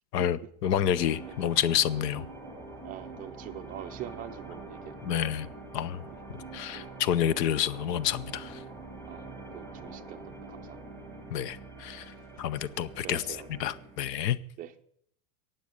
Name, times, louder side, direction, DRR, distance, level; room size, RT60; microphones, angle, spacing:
voice 1, 0.1-2.2 5.0-5.5 5.7-6.0 6.5-8.6 11.3-13.2 13.6-14.4, left 10 dB, 85° left, 0.9 m, -29 dB
sound 1, 0.6-14.0, right 2 dB, 5° left, 2.7 m, -45 dB
voice 2, 2.8-5.2 6.7-6.9 9.0-9.3 9.5-10.8 13.0-13.5 14.6-14.8, right 11 dB, 20° right, 0.5 m, -44 dB
15.5 x 9.3 x 6.5 m
supercardioid pair, 155°, 47 cm